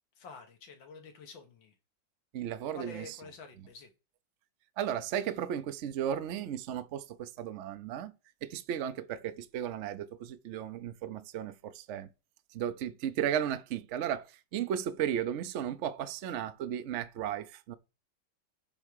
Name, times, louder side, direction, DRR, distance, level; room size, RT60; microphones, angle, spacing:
voice 1, 0.2-1.7 2.7-3.9, left 4 dB, 80° left, 2.0 m, -49 dB
voice 2, 2.3-3.0 4.8-8.1 8.4-12.1 12.5-14.3 14.5-17.8, right 10 dB, 80° right, 0.6 m, -35 dB
9.0 x 3.6 x 6.5 m
omnidirectional pair, 2.0 m